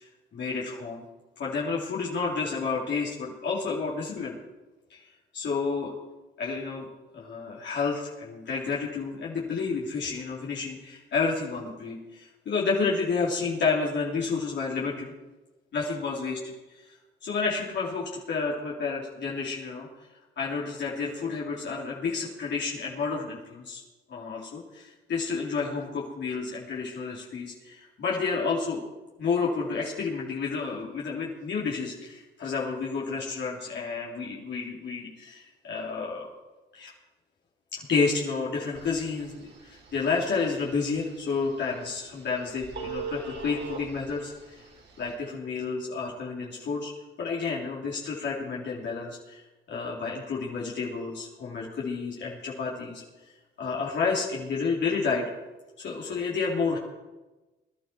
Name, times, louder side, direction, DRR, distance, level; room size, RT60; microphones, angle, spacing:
voice 1, 0.3-1.0 1.4-4.3 4.9-5.0 5.3-5.9 6.4-6.9 7.1-15.1 15.7-16.4 16.7-16.8 17.2-19.9 20.4-23.8 24.1-28.8 29.2-36.3 36.7-36.9 37.7-39.3 39.6-44.6 45.0-46.9 47.2-49.4 49.7-53.0 53.6-55.3 55.8-56.8, left 4 dB, 60° left, -4 dB, 3.3 m, -30 dB
Telephone, 38.7-45.1, right 5 dB, 60° right, 3.5 m, -43 dB
21.5 x 11.5 x 4.6 m, 1.1 s
cardioid pair, 90°, 20 cm